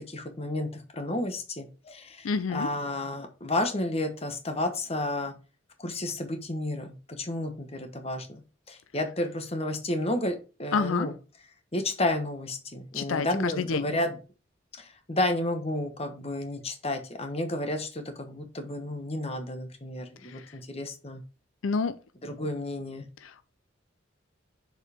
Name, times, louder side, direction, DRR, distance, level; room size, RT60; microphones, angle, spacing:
voice 1, 0.1-5.3 5.8-8.4 8.7-11.1 11.7-14.1 14.8-21.2 22.2-23.1, left 1 dB, 30° left, 1.1 m, -31 dB
voice 2, 2.2-2.7 10.7-11.1 12.9-13.9 20.2-20.6 21.6-22.0 23.2-23.4, left 5 dB, 80° left, 0.5 m, -29 dB
6.8 x 4.7 x 3.5 m
head